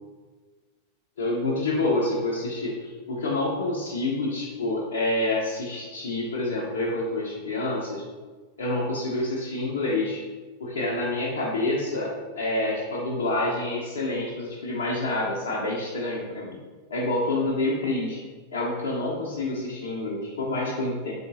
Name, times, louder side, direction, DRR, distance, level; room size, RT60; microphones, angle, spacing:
voice 1, 1.2-8.0 8.6-10.2 10.6-16.6 16.9-18.2 18.5-21.2, left 2 dB, 65° left, -4 dB, 0.7 m, -27 dB
4.0 x 3.6 x 2.6 m, 1.4 s
figure-of-eight pair, 90°, 0 cm